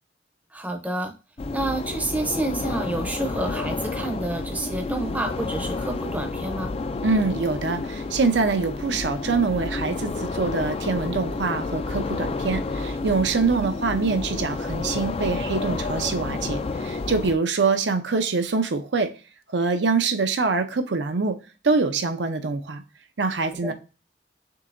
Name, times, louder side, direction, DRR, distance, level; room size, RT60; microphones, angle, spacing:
voice 1, 0.5-1.1 1.5-6.7 13.5-13.7 23.6-23.7, right 2 dB, 10° right, 4 dB, 0.6 m, -29 dB
sound 1, 1.4-17.4, left 3 dB, 35° left, 0.3 m, -30 dB
voice 2, 7.0-19.1 19.5-21.4 21.6-22.8 23.2-23.7, right 4 dB, 85° right, 7 dB, 0.7 m, -24 dB
6.5 x 2.8 x 2.6 m, 0.32 s
head